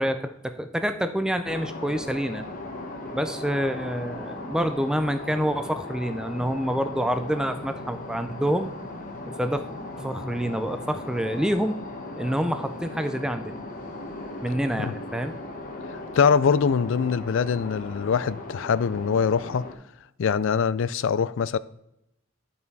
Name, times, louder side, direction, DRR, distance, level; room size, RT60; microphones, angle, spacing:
voice 1, 0.0-2.4 3.1-8.7 9.4-9.6 10.0-11.8 12.2-13.6 14.4-15.3, equal, 5° right, 0.4 m, -27 dB
sound 1, 1.4-19.7, left 2 dB, 40° left, 1.5 m, -38 dB
voice 2, 15.9-19.7 20.2-21.6, left 6 dB, 65° left, 0.4 m, -23 dB
10.5 x 5.6 x 4.6 m
head